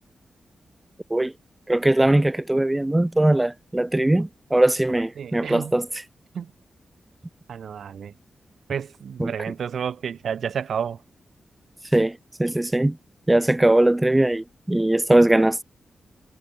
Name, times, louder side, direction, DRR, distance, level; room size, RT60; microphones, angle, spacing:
voice 1, 1.7-5.9 9.2-9.3 11.9-13.0 13.3-15.6, right 1 dB, 10° right, 0.6 m, -20 dB
voice 2, 5.2-5.7 6.3-6.5 7.5-8.1 8.7-11.0, right 7 dB, 85° right, 1.8 m, -30 dB
wide cardioid pair, 175°, 0 cm